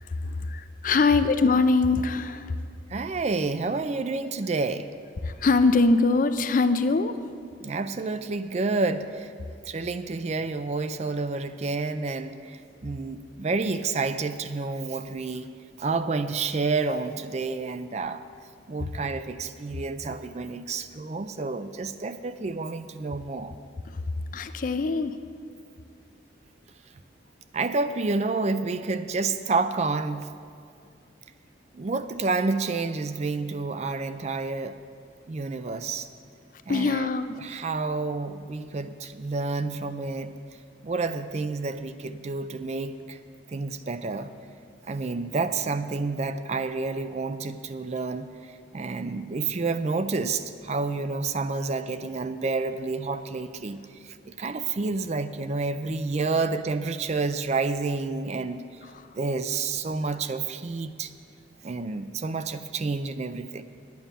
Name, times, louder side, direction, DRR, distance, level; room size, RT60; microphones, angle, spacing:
voice 1, 0.5-2.6 5.2-7.1 24.3-25.2 36.7-37.4, left 3 dB, 45° left, 11 dB, 0.4 m, -22 dB
voice 2, 2.9-4.9 7.6-9.3 9.6-15.5 15.8-18.2 18.7-23.6 27.5-30.3 31.7-34.8 35.3-36.1 36.7-37.1 37.4-40.3 40.8-43.2 43.5-44.3 44.8-58.6 59.2-61.1 61.6-63.6, right 3 dB, 35° right, 11 dB, 0.4 m, -29 dB
10.0 x 9.4 x 6.8 m, 2.3 s
head